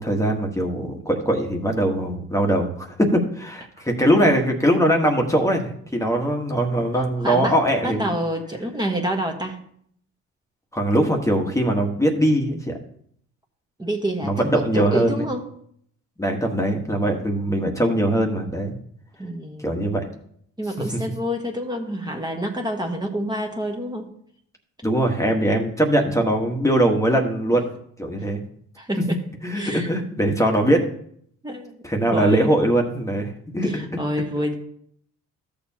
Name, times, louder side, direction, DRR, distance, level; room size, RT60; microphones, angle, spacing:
voice 1, 0.0-8.1 10.7-12.8 14.2-15.2 16.2-18.7 19.6-20.1 24.8-27.7 28.0-28.4 29.4-30.8 31.8-33.8, right 1 dB, 10° left, 2 dB, 1.3 m, -21 dB
voice 2, 7.2-9.6 13.8-15.5 19.2-19.9 20.6-24.1 28.2-28.3 28.8-29.2 29.5-29.9 31.4-31.8 32.1-32.6 33.6-34.6, equal, 15° right, 1 dB, 1.3 m, -28 dB
13.5 x 6.9 x 2.8 m, 0.65 s
cardioid pair, 90°, 30 cm